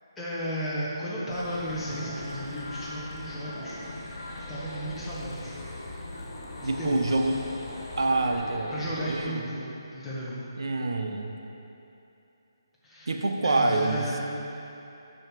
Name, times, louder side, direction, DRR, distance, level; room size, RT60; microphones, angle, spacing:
voice 1, 0.1-3.8 4.5-5.5 6.6-7.2 8.7-10.4 12.8-14.2, equal, 5° left, -10 dB, 1.7 m, -34 dB
sound 1, 1.3-9.2, left 1 dB, 50° left, 2.1 m, -39 dB
voice 2, 6.6-7.4 8.0-9.5 10.6-11.4 13.1-14.1, right 2 dB, 75° right, 4 dB, 0.9 m, -26 dB
10.5 x 5.7 x 4.7 m, 2.8 s
hypercardioid pair, 160°, 2 cm